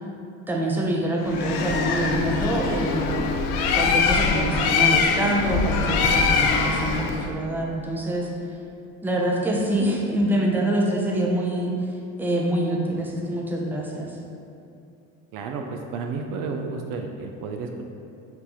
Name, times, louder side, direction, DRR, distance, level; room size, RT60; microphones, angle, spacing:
voice 1, 0.5-3.1 3.7-8.3 9.0-14.2, right 1 dB, 5° right, -2 dB, 0.6 m, -25 dB
Bird, 1.3-7.3, left 4 dB, 70° left, 0.5 m, -23 dB
voice 2, 15.3-17.8, right 4 dB, 60° right, 3 dB, 0.5 m, -32 dB
4.4 x 2.6 x 4.3 m, 2.6 s
supercardioid pair, 75°, 37 cm